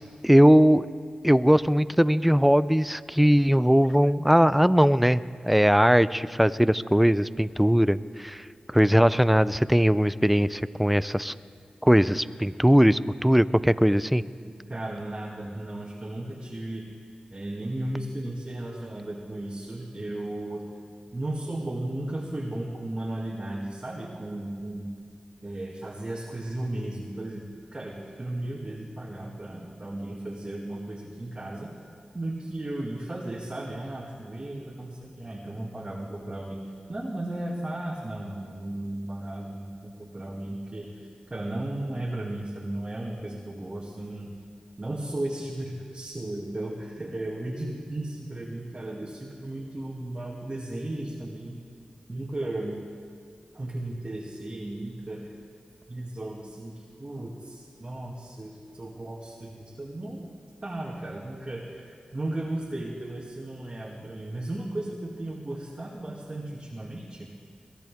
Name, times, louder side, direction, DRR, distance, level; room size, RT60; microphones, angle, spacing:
voice 1, 0.2-0.9 1.2-11.3 11.8-14.2, equal, 5° right, 16 dB, 0.5 m, -20 dB
voice 2, 14.4-16.8 17.3-20.6 21.1-24.9 25.4-31.7 32.1-36.6 36.9-44.3 44.8-51.6 52.1-52.8 53.5-55.3 55.9-60.2 60.6-67.3, right 1 dB, 35° right, -3 dB, 2.1 m, -35 dB
23.0 x 13.5 x 3.6 m, 2.1 s
cardioid pair, 45°, 3 cm